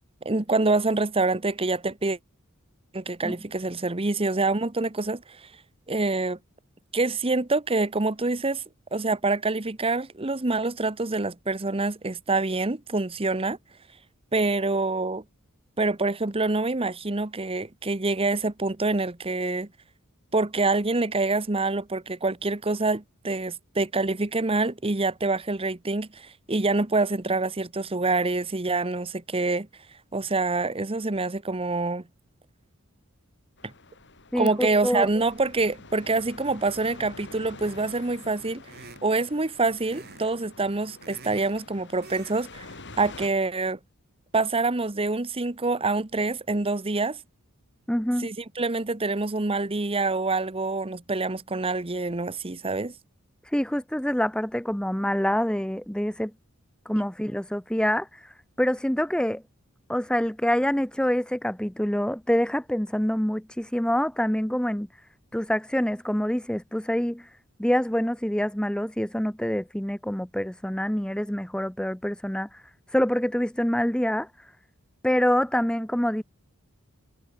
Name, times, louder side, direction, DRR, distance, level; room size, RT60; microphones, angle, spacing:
voice 1, 0.2-2.2 2.9-5.5 5.9-6.4 6.9-8.6 8.9-13.6 14.3-15.2 15.8-19.7 20.3-29.7 30.1-32.0 33.6-33.7 34.4-38.6 39.0-42.7 43.0-43.8 44.3-47.2 48.2-52.9, right 3 dB, 25° right, 1.1 m, -26 dB
sound 1, 33.6-43.3, left 3 dB, 55° left, 5.4 m, -47 dB
voice 2, 34.3-35.1 47.9-48.3 53.5-56.3 56.9-58.2 58.6-59.4 59.9-64.9 65.3-67.3 67.6-72.5 72.9-74.3 75.0-76.2, equal, 5° left, 0.8 m, -26 dB
sound 2, 37.6-38.0 38.6-39.3 39.9-40.3 40.6-41.6 42.0-42.4 42.7-42.9, right 3 dB, 45° right, 5.3 m, -47 dB
head